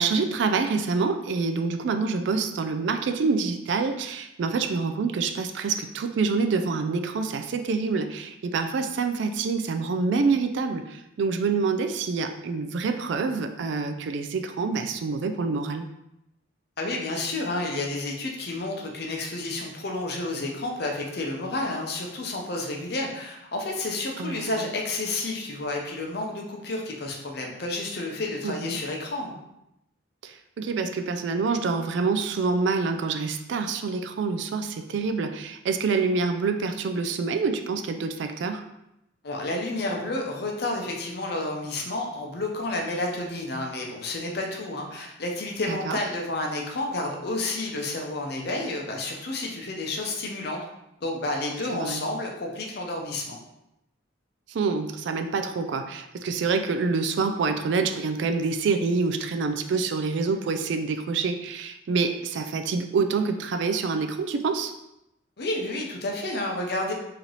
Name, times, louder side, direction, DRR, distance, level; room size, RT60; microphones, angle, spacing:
voice 1, 0.0-15.9 24.2-24.6 28.4-28.8 30.2-38.6 45.7-46.0 51.7-52.1 54.5-64.7, right 4 dB, 60° right, 7 dB, 0.3 m, -26 dB
voice 2, 16.8-29.4 39.2-50.6 51.0-53.4 65.4-66.9, left 2 dB, 50° left, 1 dB, 0.6 m, -30 dB
3.1 x 2.8 x 3.8 m, 0.86 s
head